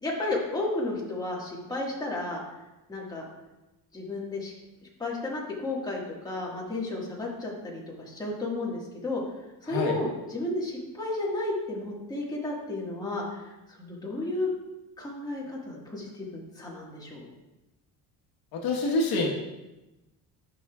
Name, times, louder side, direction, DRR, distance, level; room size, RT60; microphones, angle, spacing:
voice 1, 0.0-2.4 2.9-3.2 3.9-4.5 5.0-9.2 9.6-13.2 13.8-14.5 15.0-17.2, left 2 dB, 10° left, -4 dB, 1.7 m, -32 dB
voice 2, 18.5-19.3, left 2 dB, 70° left, 0 dB, 1.3 m, -26 dB
11.0 x 6.1 x 2.4 m, 1.0 s
cardioid pair, 135°, 38 cm